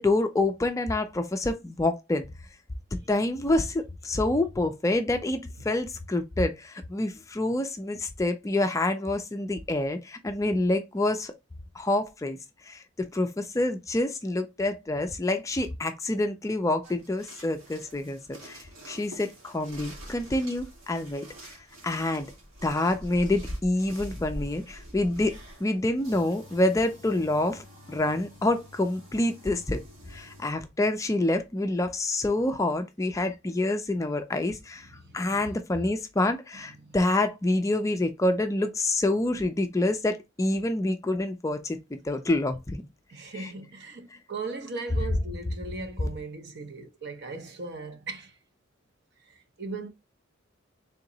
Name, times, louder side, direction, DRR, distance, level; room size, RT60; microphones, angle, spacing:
voice 1, 0.0-2.3 3.1-11.3 11.8-12.4 12.7-21.2 21.8-22.3 22.6-25.3 25.6-29.8 30.1-34.9 35.1-42.8 43.3-43.5, left 2 dB, 15° left, 0.4 m, -27 dB
sound 1, 16.8-30.6, equal, 80° right, 1.8 m, -45 dB
voice 2, 34.9-35.5 36.2-36.3 36.8-37.0 43.1-48.4 49.2-49.9, right 3 dB, 55° right, 0.7 m, -38 dB
3.6 x 2.9 x 3.9 m
head